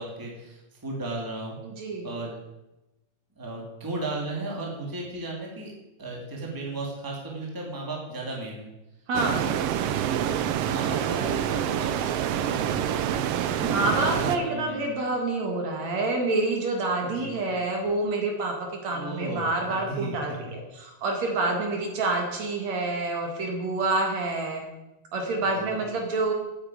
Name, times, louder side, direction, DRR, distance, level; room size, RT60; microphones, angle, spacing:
voice 1, 0.0-1.6 2.0-2.4 3.4-5.7 6.0-8.7 9.3-9.5 10.2-10.4 10.7-12.0 12.4-13.1 13.6-13.9 14.2-14.9 17.0-17.3 18.9-20.2 25.4-25.8, right 2 dB, 5° right, -2 dB, 2.3 m, -35 dB
voice 2, 1.6-2.1 9.1-9.4 13.3-18.5 18.8-24.6 25.1-26.3, right 2 dB, 60° right, 2 dB, 3.0 m, -27 dB
sound 1, 9.1-14.4, right 10 dB, 80° right, 1.4 m, -27 dB
9.7 x 8.3 x 8.6 m, 0.98 s
omnidirectional pair, 3.6 m